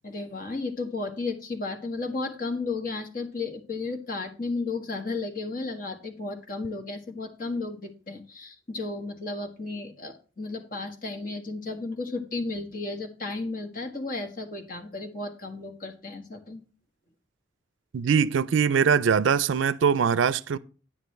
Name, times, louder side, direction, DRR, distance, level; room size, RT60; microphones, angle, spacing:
voice 1, 0.0-16.6, left 3 dB, 45° left, 1.5 m, -33 dB
voice 2, 17.9-20.6, right 6 dB, 75° right, 0.4 m, -22 dB
9.9 x 9.1 x 3.2 m
head